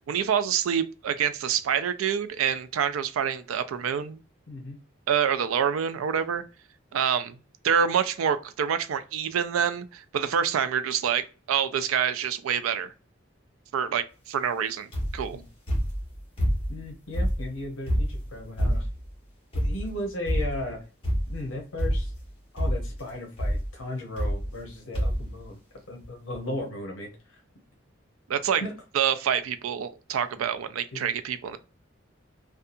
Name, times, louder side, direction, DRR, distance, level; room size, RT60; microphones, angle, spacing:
voice 1, 0.1-4.2 5.1-6.4 6.9-7.4 7.6-12.9 13.7-14.9 15.1-15.4 28.3-28.6 28.9-31.6, right 8 dB, 90° right, 0.3 m, -26 dB
voice 2, 4.5-4.8 15.3-15.5 16.7-18.9 19.5-20.8 21.3-22.1 22.5-25.6 25.9-27.1 28.6-28.7 30.9-31.1, left 1 dB, 75° left, 0.7 m, -36 dB
sound 1, 14.9-15.3 15.7-16.8 17.1-19.1 19.5-20.0 20.2-20.7 21.0-21.4 21.8-22.3 22.6-23.0 23.4-23.7 24.2-24.7 24.9-25.3 26.0-26.1 26.3-26.4, equal, 25° left, 1.2 m, -27 dB
2.6 x 2.3 x 2.4 m
head